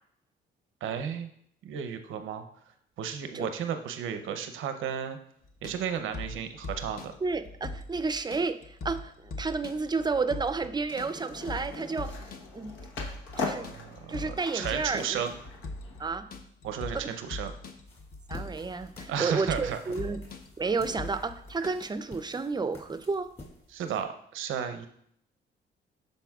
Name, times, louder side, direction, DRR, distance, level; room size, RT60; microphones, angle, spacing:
voice 1, 0.8-1.3 1.6-2.4 3.0-5.2 5.6-7.1 13.3-15.3 16.6-17.5 19.1-19.8 23.7-24.9, right 8 dB, 80° right, 8 dB, 0.7 m, -33 dB
sound 1, 5.4-21.7, left 2 dB, 50° left, 0.9 m, -42 dB
voice 2, 7.2-12.3 12.5-12.8 13.4-13.7 14.1-15.2 16.0-16.3 16.9-17.1 18.3-20.2 20.6-23.3, right 4 dB, 20° right, 11 dB, 0.5 m, -31 dB
Skateboard, 10.9-16.1, left 4 dB, 80° left, 1.2 m, -40 dB
sound 2, 17.8-24.0, left 2 dB, 30° left, 2.1 m, -52 dB
12.0 x 4.2 x 2.4 m, 0.68 s
cardioid pair, 90°, 20 cm